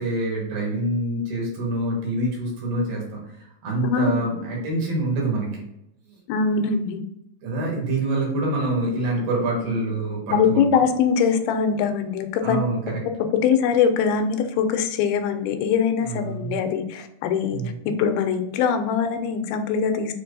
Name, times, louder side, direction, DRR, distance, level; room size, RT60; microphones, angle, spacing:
voice 1, 0.0-3.2 3.6-5.7 7.4-10.7 12.4-13.0 16.0-16.6 17.5-17.7, right 2 dB, 70° right, -2 dB, 3.1 m, -26 dB
voice 2, 3.8-4.5 6.3-7.0 9.6-10.0 10.3-12.6 13.4-20.1, left 6 dB, 85° left, 7 dB, 2.4 m, -22 dB
6.9 x 2.9 x 2.6 m, 0.83 s
omnidirectional pair, 4.2 m